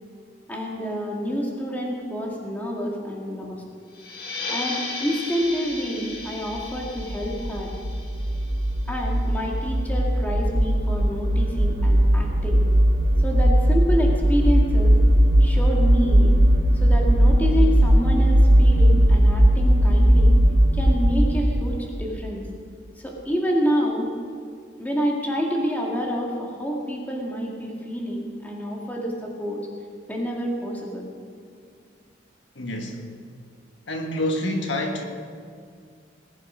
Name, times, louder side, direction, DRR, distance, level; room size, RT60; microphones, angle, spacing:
voice 1, 0.5-3.6 4.5-7.7 8.9-12.6 13.2-15.0 15.4-16.4 16.8-20.3 20.7-22.5 23.0-24.1 24.8-29.6 30.1-31.1, equal, 10° left, -2 dB, 2.2 m, -28 dB
sound 1, 3.9-9.2, left 3 dB, 55° left, 1.9 m, -35 dB
sound 2, 6.6-21.9, equal, 85° right, 1.5 m, -18 dB
voice 2, 32.5-33.1 33.9-35.0, left 1 dB, 75° left, 3 dB, 1.5 m, -27 dB
20.0 x 9.8 x 5.2 m, 2.1 s
head